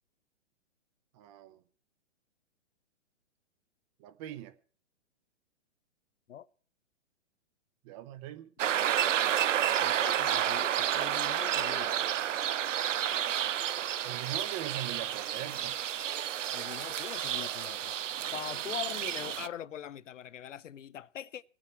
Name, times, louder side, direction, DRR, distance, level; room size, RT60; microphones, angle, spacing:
voice 1, 1.1-1.6 4.0-4.6 7.8-8.5 14.0-15.8, right 13 dB, 25° right, 0.7 m, -41 dB
sound 1, 8.6-19.5, right 10 dB, 85° right, 0.6 m, -31 dB
voice 2, 9.8-12.0 16.5-18.0 18.3-21.4, left 10 dB, 85° left, 0.6 m, -42 dB
20.5 x 8.8 x 4.4 m
hypercardioid pair, 135°, 36 cm